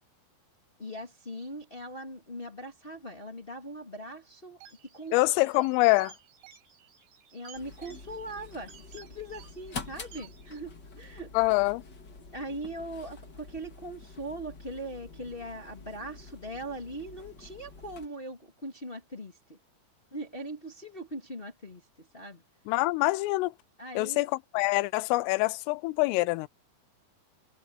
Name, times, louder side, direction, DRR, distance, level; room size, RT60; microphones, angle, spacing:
voice 1, 0.8-4.6 4.9-5.5 7.3-11.3 12.3-19.6 20.1-22.4 23.8-24.3, right 1 dB, 40° left, 0.8 m, -40 dB
sound 1, 4.6-10.6, right 8 dB, 85° right, 6.8 m, -54 dB
voice 2, 5.1-6.1 11.3-11.8 22.7-23.5 24.0-26.5, left 22 dB, 85° left, 3.2 m, -25 dB
sound 2, 7.5-18.1, left 4 dB, 60° left, 1.1 m, -47 dB
omnidirectional pair, 5.8 m